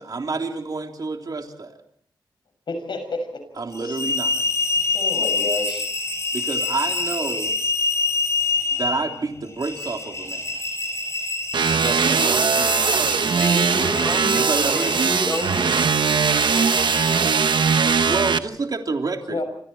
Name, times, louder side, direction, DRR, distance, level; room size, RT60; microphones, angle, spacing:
voice 1, 0.0-1.8 3.6-4.4 6.3-7.6 8.7-10.6 11.7-13.5 14.3-15.0 18.0-19.4, right 3 dB, 55° right, 3 dB, 3.4 m, -29 dB
voice 2, 2.7-3.4 3.8-4.0 4.9-5.8 19.3-19.4, left 2 dB, 80° left, 7 dB, 6.5 m, -29 dB
sound 1, 3.7-18.0, left 3 dB, 35° left, 5.1 m, -27 dB
sound 2, 11.5-18.4, right 6 dB, 75° right, 1.0 m, -20 dB
voice 3, 13.2-14.5 14.7-15.7, equal, 15° left, 10 dB, 4.8 m, -29 dB
29.0 x 26.5 x 4.4 m, 0.63 s
cardioid pair, 70°, 8 cm